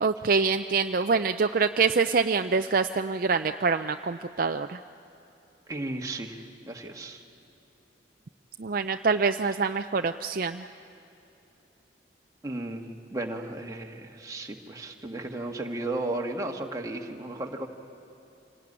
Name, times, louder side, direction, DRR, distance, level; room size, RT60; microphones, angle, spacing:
voice 1, 0.0-4.8 8.6-10.6, right 4 dB, 50° right, 8 dB, 0.5 m, -25 dB
voice 2, 5.7-7.2 12.4-17.7, right 2 dB, 20° right, 2 dB, 1.6 m, -34 dB
26.0 x 18.0 x 9.8 m, 3.0 s
head